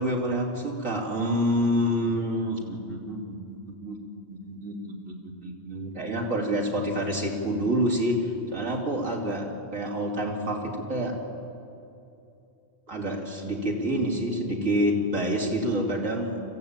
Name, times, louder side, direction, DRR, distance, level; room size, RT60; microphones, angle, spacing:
voice 1, 0.0-4.0 4.3-5.1 5.4-9.5 9.7-11.2 12.9-16.4, equal, 80° right, -2 dB, 3.8 m, -27 dB
25.5 x 15.5 x 9.0 m, 2.7 s
omnidirectional pair, 1.3 m